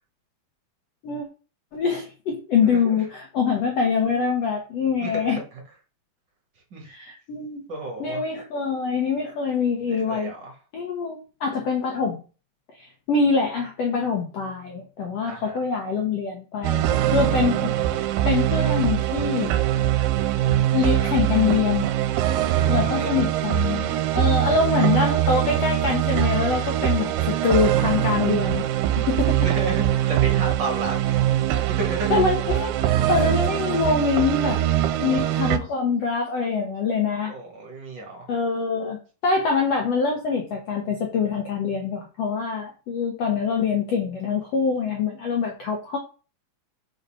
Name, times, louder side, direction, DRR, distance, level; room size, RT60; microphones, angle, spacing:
voice 1, 1.7-5.4 6.8-7.7 8.0-10.3 10.7-12.2 12.8-19.6 20.7-21.9 22.7-29.5 32.1-34.6 35.0-37.3 38.3-46.0, left 5 dB, 80° left, 1 dB, 1.4 m, -24 dB
voice 2, 2.6-3.0 5.0-5.3 6.7-6.9 7.7-8.2 9.8-10.5 15.3-15.6 22.6-23.2 29.4-31.2 31.8-32.2 37.3-38.2, right 2 dB, 50° right, 1 dB, 1.4 m, -33 dB
sound 1, 16.6-35.6, right 12 dB, 80° right, 2.2 m, -22 dB
5.4 x 4.8 x 5.5 m, 0.35 s
omnidirectional pair, 4.5 m